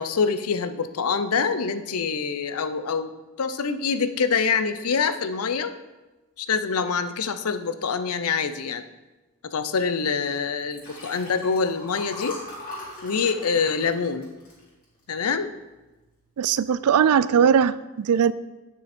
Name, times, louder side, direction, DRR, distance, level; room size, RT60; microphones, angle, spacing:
voice 1, 0.0-3.1 3.4-5.7 6.4-8.8 9.4-12.4 13.0-14.3 15.1-15.5, left 5 dB, 80° left, 10 dB, 0.6 m, -25 dB
Liquid, 10.6-15.2 15.7-16.0 16.2-16.3, left 2 dB, 40° left, 2.9 m, -40 dB
voice 2, 16.4-18.3, right 7 dB, 90° right, 16 dB, 0.4 m, -20 dB
9.1 x 6.5 x 4.3 m, 1.1 s
head